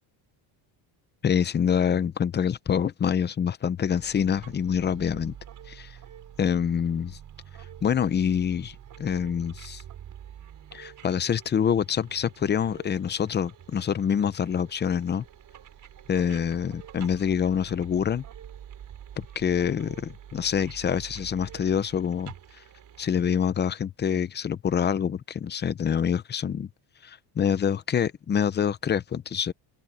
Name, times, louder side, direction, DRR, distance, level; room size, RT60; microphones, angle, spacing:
voice 1, 1.2-5.3 5.7-5.9 6.4-7.2 7.8-9.8 10.7-15.2 16.1-18.2 19.2-22.3 23.0-26.7 27.0-29.5, left 8 dB, 25° left, 0.6 m, -26 dB
sound 1, 3.9-23.4, right 10 dB, 45° right, 5.8 m, -47 dB
cardioid pair, 165°, 44 cm